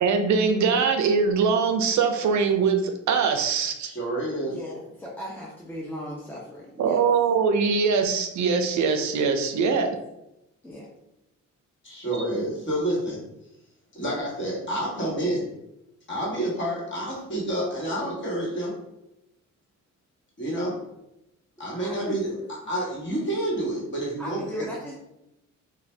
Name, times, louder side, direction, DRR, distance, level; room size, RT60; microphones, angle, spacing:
voice 1, 0.0-3.9 6.8-9.9, right 5 dB, 65° right, 6 dB, 0.4 m, -22 dB
voice 2, 3.8-4.5 11.8-13.2 13.9-15.5 16.1-18.7 20.4-20.8 21.6-22.3 22.7-24.7, right 1 dB, 40° left, -5 dB, 1.3 m, -28 dB
voice 3, 4.5-7.0 9.5-9.8 10.6-10.9 21.6-22.5 24.2-24.9, equal, 5° left, -4 dB, 0.4 m, -38 dB
2.5 x 2.2 x 3.2 m, 0.87 s
cardioid pair, 90°, 31 cm